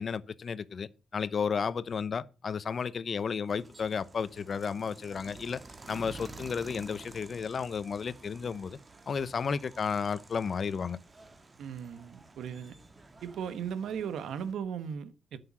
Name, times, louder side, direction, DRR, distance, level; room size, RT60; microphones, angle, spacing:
voice 1, 0.0-5.6 5.9-8.8 9.1-11.0, left 6 dB, 55° left, 0.8 m, -33 dB
sound 1, 3.5-14.5, right 3 dB, 35° right, 1.7 m, -51 dB
voice 2, 11.6-12.8 13.2-15.4, right 7 dB, 80° right, 1.0 m, -37 dB
9.7 x 6.8 x 7.2 m
supercardioid pair, 60°, 0 cm